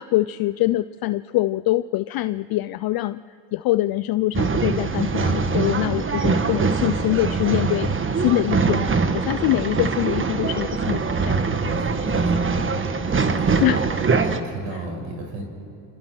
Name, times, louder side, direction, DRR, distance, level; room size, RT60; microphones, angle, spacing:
voice 1, 0.0-3.2 3.5-11.4 13.6-13.8 14.7-14.8, left 16 dB, 50° left, 14 dB, 0.5 m, -24 dB
Male speech man speaking / Chatter / Rattle, 4.3-14.4, right 4 dB, 25° right, 1.5 m, -23 dB
voice 2, 11.5-12.6 13.1-13.8 14.2-15.4, right 2 dB, 70° right, 3 dB, 6.0 m, -34 dB
27.5 x 27.0 x 6.2 m, 2.7 s
supercardioid pair, 95°, 47 cm